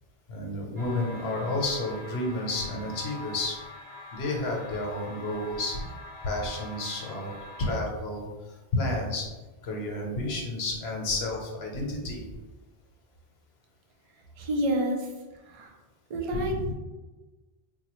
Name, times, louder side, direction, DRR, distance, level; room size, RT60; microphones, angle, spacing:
voice 1, 0.3-3.6 4.1-5.8 6.2-9.3 9.6-12.2 16.3-16.7, left 2 dB, 85° left, 0 dB, 1.0 m, -31 dB
sound 1, 0.8-7.8, left 2 dB, 10° right, 1.0 m, -44 dB
voice 2, 14.5-15.0 15.6-15.7 16.1-16.7, right 1 dB, 45° right, 1 dB, 0.5 m, -27 dB
4.0 x 2.2 x 2.9 m, 1.2 s
omnidirectional pair, 1.0 m